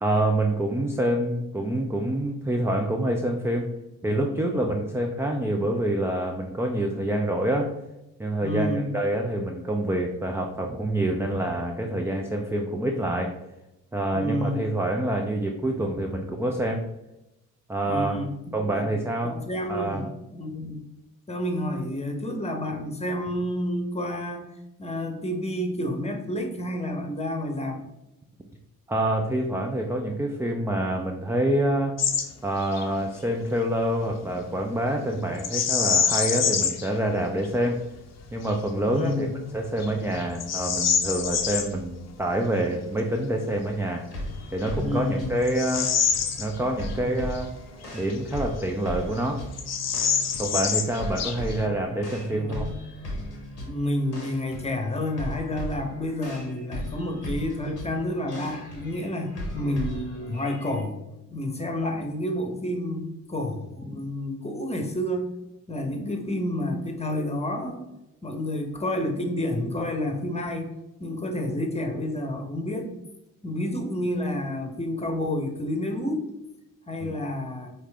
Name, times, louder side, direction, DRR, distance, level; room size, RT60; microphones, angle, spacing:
voice 1, 0.0-3.7 4.0-7.7 8.2-13.3 13.9-16.8 17.7-18.2 18.5-19.4 19.7-20.1 28.9-31.9 32.4-37.8 38.3-39.3 39.5-44.0 44.5-45.9 46.4-47.5 47.9-49.4 50.4-52.7 63.9-64.0 77.0-77.1, right 1 dB, 5° right, 2 dB, 0.4 m, -26 dB
voice 2, 8.4-9.0 14.1-14.7 17.8-20.8 21.3-24.5 24.8-27.8 38.9-39.5 44.7-45.4 52.3-52.6 53.6-61.0 61.3-65.3 65.7-67.8 68.2-70.7 71.0-72.9 73.4-76.2 76.9-77.7, left 1 dB, 15° left, 4 dB, 1.0 m, -30 dB
Bird vocalization bird call bird song, 32.0-32.3 32.6-32.9 35.4-36.9 37.4-37.5 38.2-38.6 39.1-39.2 39.8-41.7 43.8-43.9 44.5-47.0 47.3-47.4 48.1-48.9 49.2-49.3 49.5-51.7, left 7 dB, 35° left, 0.7 m, -26 dB
sound 1, 44.1-60.8, left 1 dB, 90° left, 0.9 m, -37 dB
4.8 x 3.2 x 3.4 m, 0.92 s
figure-of-eight pair, 40°, 47 cm